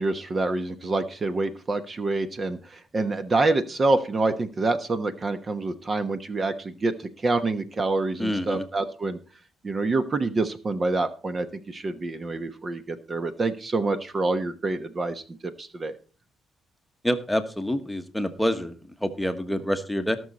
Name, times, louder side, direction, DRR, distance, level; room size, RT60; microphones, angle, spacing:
voice 1, 0.0-9.2 9.6-15.9, right 3 dB, 35° right, 10 dB, 1.1 m, -27 dB
voice 2, 8.2-8.6 17.0-18.7 19.0-20.2, equal, 5° left, 8 dB, 1.3 m, -27 dB
18.5 x 6.4 x 4.2 m, 0.35 s
cardioid pair, 90°, 0 cm